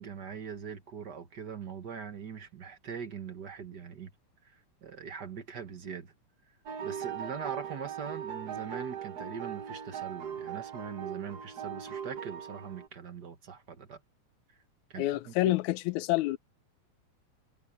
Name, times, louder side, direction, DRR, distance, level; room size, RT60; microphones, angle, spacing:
voice 1, 0.0-4.1 4.4-6.1 6.8-14.0 14.9-15.5, right 7 dB, 45° right, 1.4 m, -42 dB
sound 1, 6.7-12.9, right 8 dB, 65° right, 0.9 m, -39 dB
voice 2, 15.0-16.4, left 17 dB, 80° left, 2.1 m, -28 dB
omnidirectional pair, 3.4 m